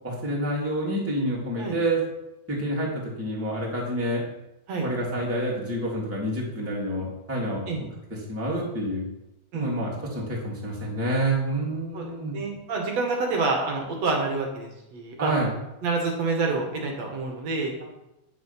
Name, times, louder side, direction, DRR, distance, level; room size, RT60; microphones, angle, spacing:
voice 1, 0.0-2.0 2.5-4.2 4.8-7.6 8.3-9.0 9.5-12.4 15.2-15.5, right 1 dB, 5° right, -4 dB, 2.4 m, -28 dB
voice 2, 11.9-15.3 15.8-17.7, right 3 dB, 50° right, 1 dB, 2.7 m, -28 dB
10.0 x 8.7 x 5.9 m, 0.93 s
omnidirectional pair, 4.6 m